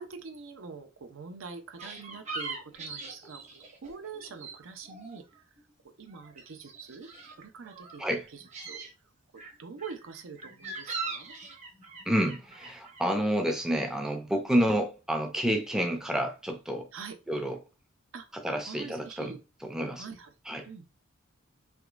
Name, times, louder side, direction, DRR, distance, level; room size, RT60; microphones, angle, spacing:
voice 1, 0.0-5.2 6.0-7.1 7.4-8.0 8.3-8.8 9.3-11.3 16.9-17.2 18.1-18.2 18.7-19.4 20.0-20.3 20.7-20.8, right 5 dB, 75° right, 0.6 m, -44 dB
sound 1, 1.8-4.6 4.8-5.7 6.0-8.0 8.4-8.9 9.4-13.0, right 4 dB, 35° right, 0.8 m, -41 dB
voice 2, 12.1-16.9 17.3-17.6 18.3-20.1 20.5-20.7, equal, 5° right, 0.4 m, -29 dB
3.6 x 2.9 x 2.4 m
head